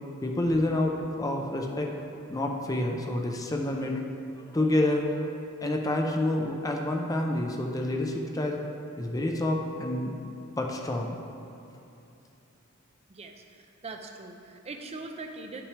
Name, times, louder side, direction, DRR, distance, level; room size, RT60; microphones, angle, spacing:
voice 1, 0.2-1.9 2.3-4.0 4.5-8.6 9.0-10.1 10.6-11.2, left 1 dB, 15° left, 1 dB, 0.5 m, -28 dB
voice 2, 13.1-15.6, right 3 dB, 30° right, 4 dB, 0.6 m, -41 dB
9.8 x 5.9 x 3.3 m, 2.9 s
head